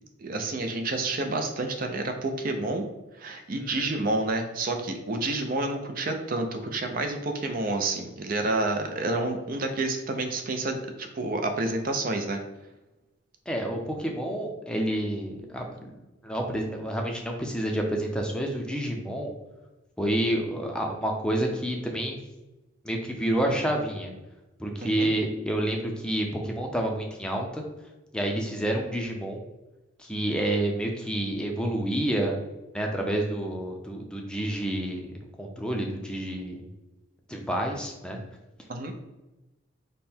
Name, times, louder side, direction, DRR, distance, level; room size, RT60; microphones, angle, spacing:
voice 1, 0.2-2.9 3.2-12.4 24.8-25.1 38.7-38.9, right 2 dB, 45° right, 5 dB, 0.5 m, -29 dB
voice 2, 3.5-4.0 13.5-15.9 16.2-19.3 20.0-22.2 22.8-24.1 24.6-27.6 28.1-29.4 30.0-32.3 32.7-35.1 35.4-36.6 37.3-38.2, right 1 dB, 5° left, 1 dB, 0.5 m, -29 dB
5.3 x 2.2 x 4.3 m, 1.0 s
head